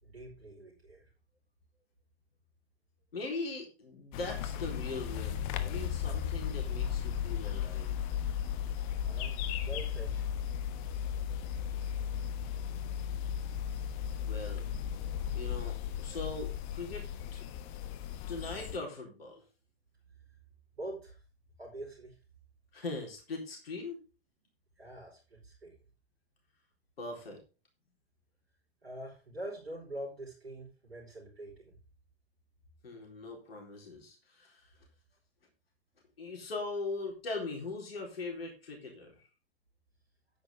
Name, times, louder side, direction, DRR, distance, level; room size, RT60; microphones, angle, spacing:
voice 1, 0.0-1.1 9.0-10.3 20.7-21.2 21.6-22.2 24.8-25.8 28.8-31.8, right 1 dB, 75° right, -4 dB, 4.9 m, -45 dB
voice 2, 3.1-7.9 14.2-14.7 15.3-17.4 18.3-19.4 22.7-24.0 27.0-27.4 32.8-34.7 36.2-39.3, left 3 dB, 70° left, 1 dB, 4.2 m, -40 dB
sound 1, 4.1-18.8, left 9 dB, 35° left, 1.2 m, -35 dB
10.0 x 9.5 x 3.7 m, 0.32 s
figure-of-eight pair, 100°, 31 cm